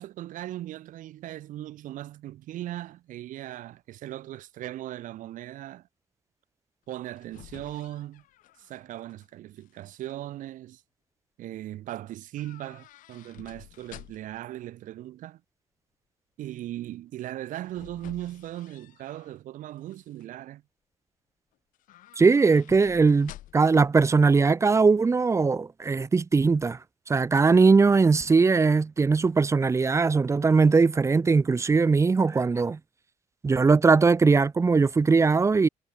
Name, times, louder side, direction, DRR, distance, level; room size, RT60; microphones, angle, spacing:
voice 1, 0.0-5.9 6.9-8.2 8.6-10.8 11.4-15.4 16.4-20.6, right 14 dB, 75° right, 4.9 m, -38 dB
sound 1, 6.9-9.3 9.6-10.1 12.3-14.5 17.2-19.4 19.8-20.3 21.7-23.8 24.1-24.2, left 15 dB, 85° left, 7.9 m, -51 dB
voice 2, 22.2-26.8 27.1-32.8 33.4-35.7, right 4 dB, 20° right, 1.6 m, -20 dB
cardioid pair, 150°, 13 cm